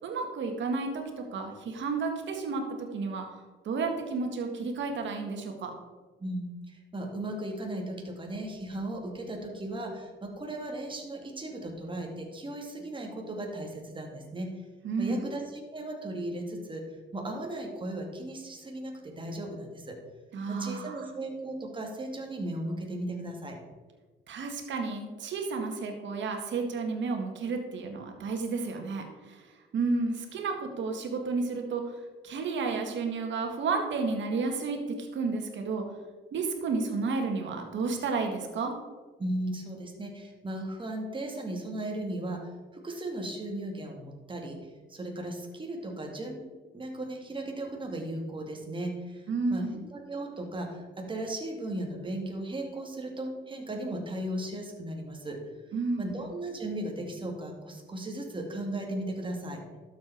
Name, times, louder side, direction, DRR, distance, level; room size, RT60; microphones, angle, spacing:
voice 1, 0.0-3.3 3.6-5.7 14.8-15.3 20.3-21.1 24.3-32.0 32.2-35.8 36.3-38.7 49.3-49.8 55.7-56.2, right 4 dB, 70° right, 3 dB, 2.0 m, -32 dB
voice 2, 6.2-14.5 15.0-20.0 20.5-23.6 39.2-55.4 56.0-59.6, right 1 dB, 25° right, 1 dB, 2.4 m, -36 dB
12.0 x 7.2 x 4.6 m, 1.3 s
cardioid pair, 90°, 20 cm